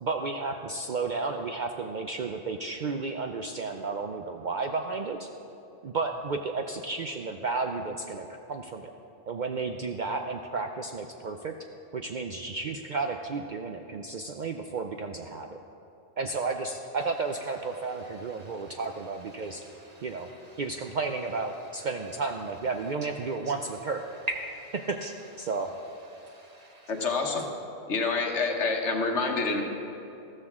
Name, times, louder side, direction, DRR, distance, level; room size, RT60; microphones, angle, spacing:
voice 1, 0.0-5.3 5.8-8.9 9.3-11.5 11.9-15.5 16.2-19.6 20.0-20.3 20.6-24.0 24.8-25.1 25.4-25.7, right 4 dB, 55° right, 4 dB, 0.6 m, -32 dB
voice 2, 17.7-21.0 21.5-22.1 23.2-23.6 24.3-25.1 25.4-27.4, right 1 dB, 35° right, 1 dB, 1.2 m, -44 dB
voice 3, 26.9-27.5 27.9-29.6, left 4 dB, 75° left, 3 dB, 1.5 m, -27 dB
13.5 x 13.0 x 3.6 m, 2.9 s
omnidirectional pair, 1.2 m